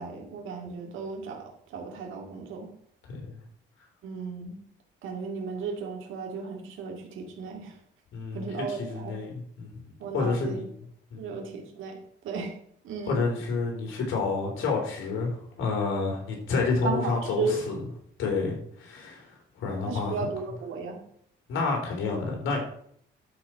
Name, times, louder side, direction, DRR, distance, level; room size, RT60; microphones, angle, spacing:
voice 1, 0.0-2.7 4.0-4.5 5.0-7.8 8.3-9.1 10.0-10.6 11.2-12.6 12.8-13.2 16.8-17.6 19.8-21.0, right 4 dB, 85° right, 2 dB, 2.5 m, -34 dB
voice 2, 8.1-9.7 10.1-10.7 11.1-11.2 13.1-17.8 18.2-20.1 21.5-22.6, left 4 dB, 85° left, 1 dB, 3.4 m, -29 dB
12.5 x 4.4 x 5.9 m, 0.65 s
cardioid pair, 90°, 20 cm